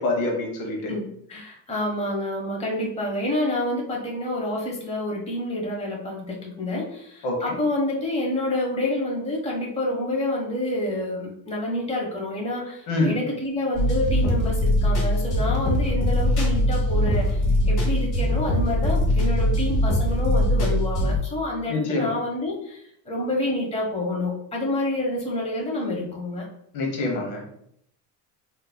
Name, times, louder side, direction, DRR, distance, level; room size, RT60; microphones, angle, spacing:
voice 1, 0.0-0.9 7.2-7.4 12.9-13.1 21.7-22.1 26.7-27.4, left 2 dB, 80° left, 1 dB, 1.1 m, -25 dB
voice 2, 0.9-26.5, left 1 dB, 15° left, -1 dB, 1.0 m, -28 dB
sound 1, 13.7-21.2, left 1 dB, 45° left, 1.2 m, -22 dB
3.7 x 2.8 x 2.2 m, 0.72 s
supercardioid pair, 95°, 41 cm